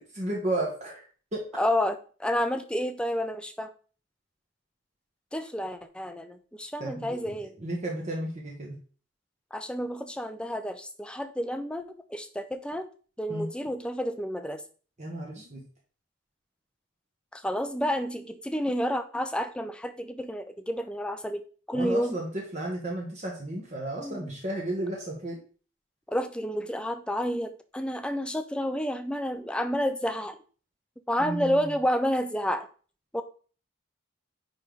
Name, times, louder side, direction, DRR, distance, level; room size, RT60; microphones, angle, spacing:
voice 1, 0.1-1.0 1.3-1.5 6.8-7.3 7.6-8.8 13.3-13.5 15.0-15.6 21.7-25.4 31.2-31.6, right 1 dB, 35° right, -1 dB, 1.2 m, -33 dB
voice 2, 1.6-3.7 5.3-7.5 9.5-11.8 12.1-12.9 13.2-14.6 17.3-22.2 24.0-24.3 26.1-30.4 31.1-32.7 33.1-33.2, equal, 5° left, 9 dB, 0.5 m, -30 dB
9.8 x 3.4 x 3.9 m, 0.40 s
head